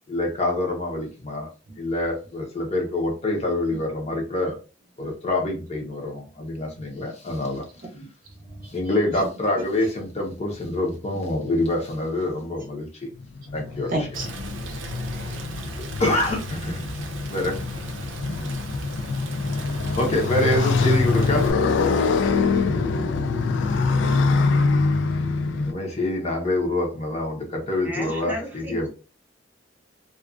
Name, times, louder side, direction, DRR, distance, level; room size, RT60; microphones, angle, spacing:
voice 1, 0.1-1.5 1.8-4.6 5.0-7.6 8.7-12.9 13.5-13.9 15.8-16.8 17.3-17.6 19.9-21.5 25.6-28.9, left 1 dB, 35° left, 1 dB, 0.7 m, -26 dB
voice 2, 6.8-9.6 11.1-11.2 13.2-14.3 14.7-15.5, right 1 dB, 45° right, 2 dB, 0.6 m, -37 dB
Motorcycle, 13.2-25.7, left 4 dB, 70° left, 0.3 m, -24 dB
Rain, 14.1-21.5, right 3 dB, 90° right, 0.5 m, -38 dB
voice 3, 27.8-28.9, equal, 10° right, -2 dB, 0.7 m, -33 dB
2.4 x 2.3 x 2.3 m, 0.33 s
head